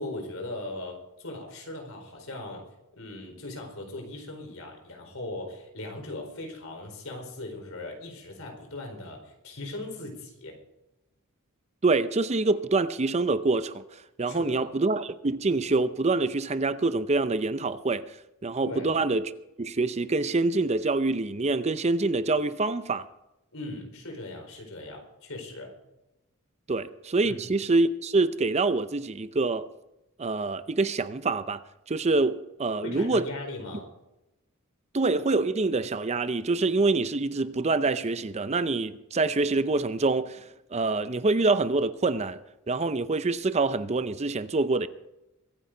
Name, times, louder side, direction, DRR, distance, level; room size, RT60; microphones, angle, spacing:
voice 1, 0.0-2.6 2.9-10.5 14.2-14.7 18.6-18.9 23.5-25.7 27.2-27.5 32.8-33.9, left 2 dB, 65° left, 4.4 m, -39 dB
voice 2, 11.8-18.2 18.4-19.3 19.6-23.1 26.7-29.7 30.2-31.6 31.9-33.2 34.9-40.4 40.7-42.4 42.7-44.9, right 3 dB, 30° right, 0.6 m, -26 dB
23.5 x 9.8 x 3.9 m
head